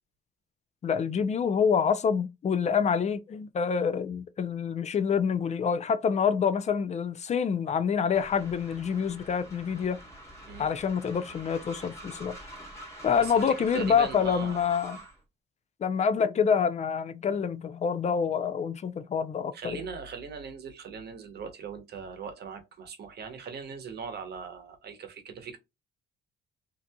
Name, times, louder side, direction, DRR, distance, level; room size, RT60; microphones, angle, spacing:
voice 1, 0.8-10.0 10.6-12.4 13.0-15.0 15.8-19.8, left 6 dB, 35° left, 0.4 m, -27 dB
Train, 8.1-15.2, right 1 dB, 15° left, 1.3 m, -46 dB
voice 2, 13.1-14.6 19.5-25.6, right 6 dB, 55° right, 0.9 m, -40 dB
2.8 x 2.5 x 2.2 m
cardioid pair, 90°, 20 cm